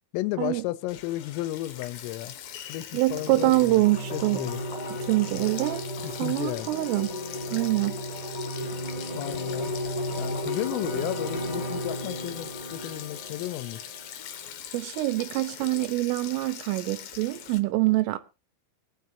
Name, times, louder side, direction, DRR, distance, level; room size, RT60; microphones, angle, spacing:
voice 1, 0.1-2.4 2.7-3.8 4.1-4.7 6.0-6.7 8.6-8.8 9.1-9.7 10.2-13.8, left 17 dB, 85° left, 3.4 m, -33 dB
Sink (filling or washing), 0.9-17.6, left 9 dB, 65° left, 2.3 m, -42 dB
voice 2, 2.9-4.4 5.1-5.9 6.2-7.1 7.5-8.0 14.7-18.2, right 19 dB, 80° right, 3.7 m, -25 dB
sound 1, 3.1-14.1, equal, 10° left, 2.5 m, -34 dB
23.5 x 9.5 x 2.8 m
omnidirectional pair, 5.9 m